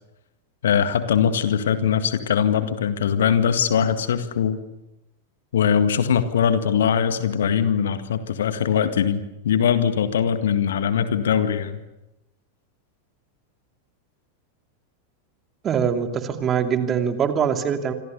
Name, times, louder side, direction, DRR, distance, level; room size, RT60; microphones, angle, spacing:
voice 1, 0.6-4.6 5.5-11.8, left 8 dB, 60° left, 10 dB, 1.9 m, -21 dB
voice 2, 15.6-17.9, right 7 dB, 25° right, 6 dB, 2.7 m, -23 dB
26.5 x 26.5 x 6.9 m, 0.99 s
figure-of-eight pair, 90°, 0 cm